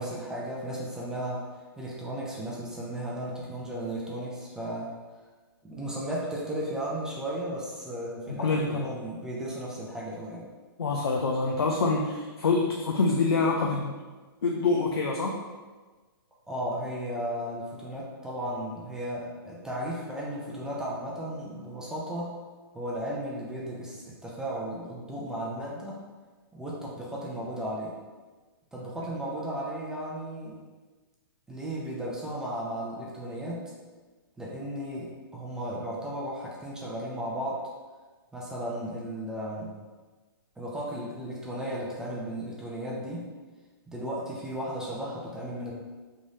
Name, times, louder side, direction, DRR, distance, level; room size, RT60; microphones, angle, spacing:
voice 1, 0.0-4.9 5.6-10.5 16.5-22.4 22.7-26.0 26.5-28.0 28.7-30.6 31.5-33.7 34.4-37.7 38.3-39.8 40.6-43.3 43.9-45.7, right 1 dB, 5° right, -5 dB, 0.6 m, -35 dB
voice 2, 8.4-8.9 10.8-13.9 14.4-15.4, left 3 dB, 85° left, 0 dB, 0.5 m, -26 dB
3.6 x 3.2 x 2.7 m, 1.3 s
hypercardioid pair, 135°, 13 cm